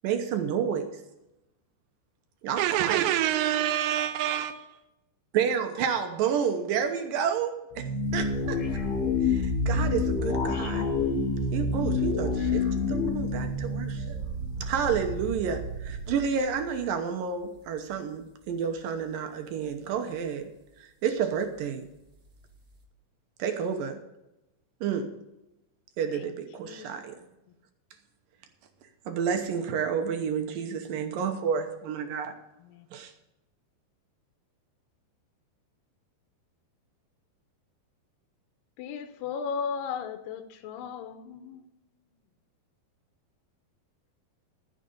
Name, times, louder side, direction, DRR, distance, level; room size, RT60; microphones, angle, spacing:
voice 1, 0.0-0.9 2.4-3.2 5.3-8.6 9.2-10.9 11.5-14.2 14.6-20.5 20.8-21.9 23.4-24.0 24.8-25.2 26.0-27.1 29.1-32.3 32.9-33.1, right 7 dB, 70° right, 2.2 m, -30 dB
voice 2, 2.6-4.7, right 12 dB, 90° right, 2.9 m, -26 dB
sound 1, 7.7-14.9, left 4 dB, 50° left, 3.6 m, -28 dB
sound 2, 8.0-16.8 17.5-17.9 18.5-18.6 22.2-22.8, right 2 dB, 35° right, 1.6 m, -36 dB
voice 3, 38.8-41.7, left 6 dB, 80° left, 2.7 m, -36 dB
14.0 x 6.6 x 6.8 m
omnidirectional pair, 5.1 m